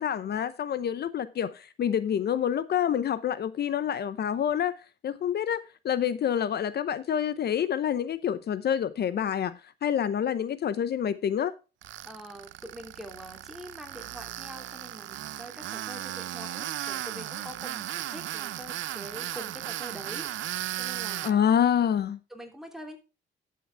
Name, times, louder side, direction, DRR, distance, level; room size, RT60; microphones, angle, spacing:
voice 1, 0.0-4.8 5.0-11.5 21.2-22.2, left 9 dB, 55° left, 0.7 m, -27 dB
Tools, 11.8-21.3, right 13 dB, 75° right, 0.6 m, -36 dB
voice 2, 12.0-20.5 20.8-21.4 22.3-23.0, equal, ahead, 3.0 m, -44 dB
11.5 x 7.8 x 3.4 m
cardioid pair, 90°, 20 cm